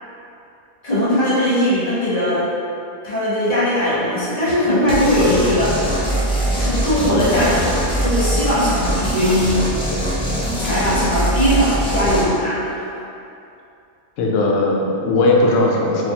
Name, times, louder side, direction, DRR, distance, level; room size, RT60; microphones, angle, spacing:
voice 1, 0.8-2.5 3.0-5.8 6.5-7.7 8.0-9.6 10.6-12.8, equal, 30° left, -11 dB, 1.2 m, -19 dB
sound 1, 3.5-3.6 3.9-4.2 4.5-4.6 6.9-8.0, left 1 dB, 85° right, 1.1 m, -30 dB
sound 2, 4.9-12.3, equal, 10° left, 0.3 m, -22 dB
voice 2, 14.2-16.1, left 2 dB, 80° left, -2 dB, 1.0 m, -17 dB
4.1 x 2.8 x 2.8 m, 2.7 s
omnidirectional pair, 1.3 m